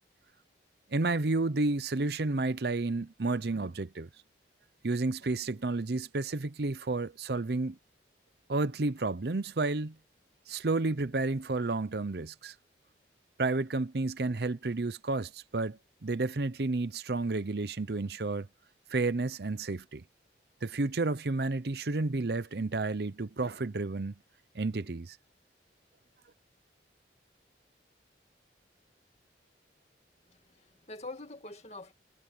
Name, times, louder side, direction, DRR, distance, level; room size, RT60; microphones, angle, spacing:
voice 1, 0.9-4.1 4.8-7.8 8.5-9.9 10.5-12.5 13.4-18.5 18.9-20.0 20.6-24.1 24.5-25.2, right 3 dB, 60° right, 0.7 m, -31 dB
voice 2, 30.3-31.9, left 2 dB, 35° left, 2.4 m, -45 dB
head